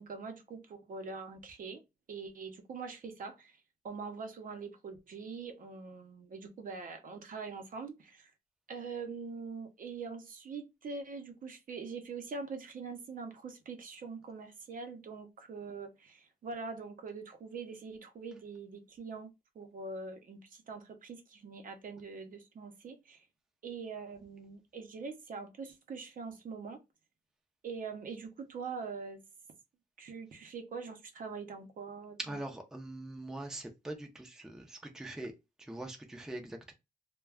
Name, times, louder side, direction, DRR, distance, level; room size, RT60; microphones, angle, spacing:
voice 1, 0.0-1.8 2.1-3.6 3.8-8.3 8.7-23.3 23.6-26.8 27.6-29.2 30.0-32.2, right 4 dB, 55° right, 0.6 m, -43 dB
voice 2, 32.2-35.3 35.6-36.7, right 2 dB, 5° right, 0.5 m, -42 dB
2.2 x 2.2 x 3.4 m
cardioid pair, 110°, 17 cm